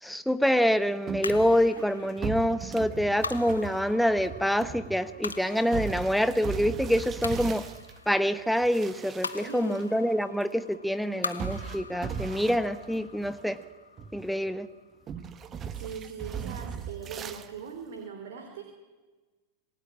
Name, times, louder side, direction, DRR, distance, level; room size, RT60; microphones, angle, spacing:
voice 1, 0.0-7.6 8.1-13.6 14.1-14.7, equal, ahead, 12 dB, 1.0 m, -26 dB
sound 1, 1.1-8.0 8.5-9.8 10.1-10.2 11.4-13.6 14.0-14.5 15.1-17.5, right 7 dB, 25° right, 1.4 m, -38 dB
sound 2, 1.2-15.7, left 4 dB, 75° left, 1.1 m, -43 dB
voice 2, 9.4-9.9 15.7-18.6, right 6 dB, 55° right, 4 dB, 3.6 m, -40 dB
27.0 x 19.0 x 8.6 m, 1.3 s
figure-of-eight pair, 90°, 0 cm